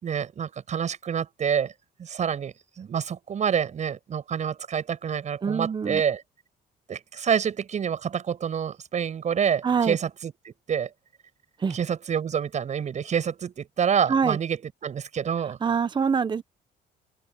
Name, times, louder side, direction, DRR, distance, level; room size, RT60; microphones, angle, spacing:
voice 1, 0.0-1.7 2.0-6.2 6.9-10.9 11.7-15.6, right 7 dB, 45° right, 7.2 m, -27 dB
voice 2, 5.4-6.0 9.6-10.0 11.6-11.8 14.1-14.4 15.6-16.4, right 6 dB, 25° right, 1.1 m, -24 dB
open air
cardioid pair, 110°, 17 cm